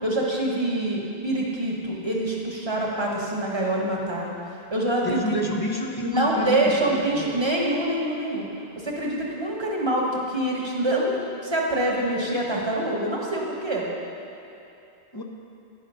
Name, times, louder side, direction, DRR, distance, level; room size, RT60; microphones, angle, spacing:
voice 1, 0.0-4.3 4.7-5.4 6.1-8.5 8.7-13.8, right 1 dB, 30° right, -3 dB, 1.1 m, -25 dB
voice 2, 5.0-7.4 15.1-15.2, equal, 25° left, 0 dB, 0.6 m, -28 dB
9.8 x 5.7 x 5.4 m, 2.8 s
omnidirectional pair, 1.0 m